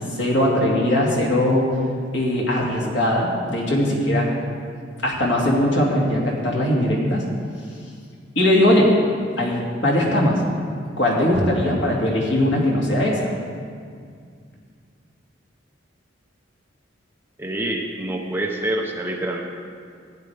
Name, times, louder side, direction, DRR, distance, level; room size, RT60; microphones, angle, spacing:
voice 1, 0.1-1.7 2.1-4.3 5.0-7.2 8.4-8.9 9.4-10.4 11.0-13.3, left 1 dB, 85° left, -3 dB, 2.3 m, -20 dB
voice 2, 17.4-19.4, right 1 dB, 10° right, 0 dB, 0.8 m, -26 dB
14.5 x 9.6 x 3.5 m, 2.2 s
head